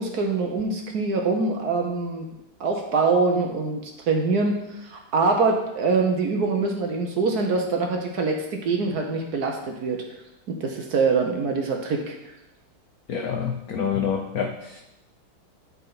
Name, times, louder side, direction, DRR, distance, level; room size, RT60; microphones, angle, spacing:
voice 1, 0.0-2.3 2.6-10.0 10.5-12.1, right 4 dB, 55° right, 2 dB, 1.2 m, -24 dB
voice 2, 13.1-14.8, left 7 dB, 85° left, 3 dB, 0.8 m, -27 dB
12.0 x 4.6 x 4.0 m, 0.90 s
omnidirectional pair, 2.4 m